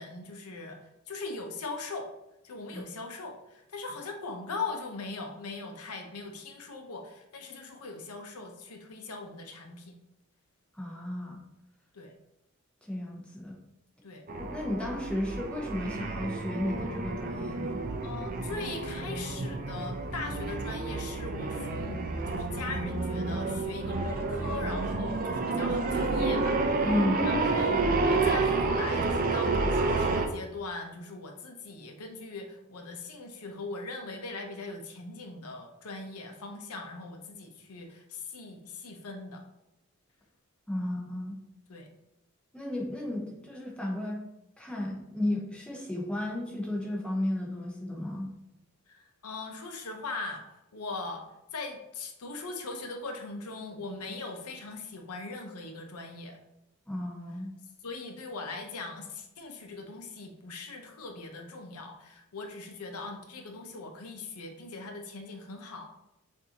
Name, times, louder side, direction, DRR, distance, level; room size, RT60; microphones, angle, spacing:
voice 1, 0.0-2.1 2.4-10.0 11.9-12.2 14.0-14.3 18.0-26.9 27.2-39.4 41.7-41.9 48.9-51.3 51.5-56.4 57.8-65.9, left 3 dB, 85° left, 4 dB, 0.7 m, -40 dB
voice 2, 10.7-11.4 12.8-13.6 14.4-17.8 26.8-27.3 40.7-41.4 42.5-44.2 44.6-48.3 56.9-57.5, left 1 dB, 5° left, -2 dB, 0.8 m, -33 dB
sound 1, 14.3-30.3, right 3 dB, 40° right, 0.4 m, -30 dB
6.1 x 2.6 x 2.8 m, 0.88 s
head